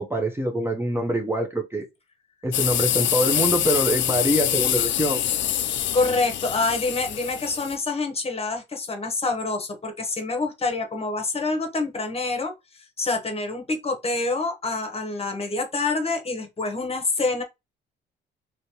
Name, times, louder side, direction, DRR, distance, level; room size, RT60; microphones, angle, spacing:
voice 1, 0.0-1.8 2.4-5.2, right 1 dB, 10° right, 0.8 m, -24 dB
sound 1, 2.5-7.8, left 11 dB, 70° left, 0.5 m, -25 dB
voice 2, 5.9-17.4, left 3 dB, 30° left, 1.0 m, -27 dB
3.1 x 2.9 x 2.8 m
cardioid pair, 90°, 20 cm